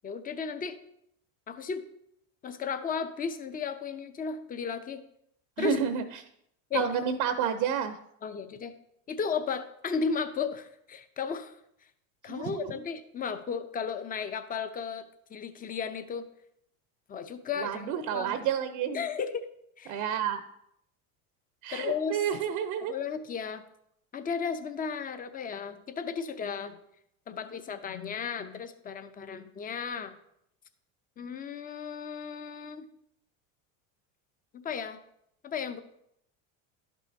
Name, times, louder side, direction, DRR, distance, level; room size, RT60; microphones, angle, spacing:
voice 1, 0.0-0.8 1.5-1.8 2.4-5.0 5.6-5.8 6.7-6.9 8.2-8.7 9.1-11.5 12.2-16.2 17.1-18.4 18.9-19.5 19.8-19.9 21.7-22.2 22.9-23.6 24.1-26.8 27.3-30.1 31.2-32.8 34.5-35.0 35.4-35.8, left 6 dB, 20° left, 10 dB, 0.6 m, -34 dB
voice 2, 5.6-6.2 6.7-8.0 12.3-12.8 17.6-19.0 19.9-20.4 21.6-22.9, right 8 dB, 65° right, 8 dB, 0.7 m, -30 dB
11.5 x 5.5 x 2.7 m, 0.75 s
supercardioid pair, 110°, 40 cm